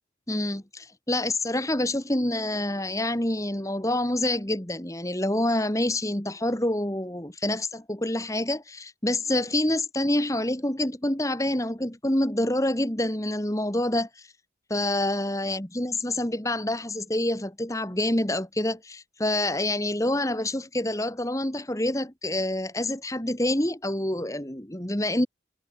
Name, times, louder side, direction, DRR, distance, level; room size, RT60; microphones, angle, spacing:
voice 1, 0.3-14.3 14.7-25.3, left 1 dB, 15° left, 1.8 m, -27 dB
head